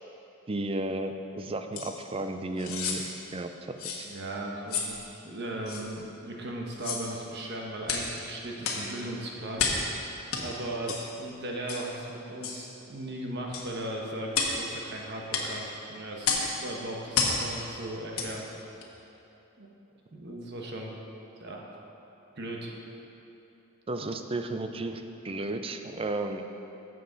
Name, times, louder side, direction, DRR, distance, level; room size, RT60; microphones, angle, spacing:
voice 1, 0.5-4.1 23.9-26.4, right 2 dB, 25° right, 7 dB, 0.5 m, -34 dB
sound 1, 1.7-1.9 2.6-3.0 3.8-4.0 4.7-4.9 5.7-5.8 6.7-7.1 7.8-8.1 8.6-8.9 9.6-9.9 10.3-10.4 10.9-11.0 11.7-11.9 12.4-12.6 13.5-13.7 14.3-14.6 15.3-15.5 16.2-16.5 17.1-17.4 18.1-18.3 18.8-18.9, left 5 dB, 90° left, 1.3 m, -30 dB
voice 2, 4.0-5.0 5.2-9.7 10.4-18.4 19.6-19.7 20.1-21.0 21.4-21.7 22.4-22.7, right 1 dB, 55° right, -1 dB, 1.2 m, -37 dB
13.0 x 7.7 x 4.0 m, 2.9 s
head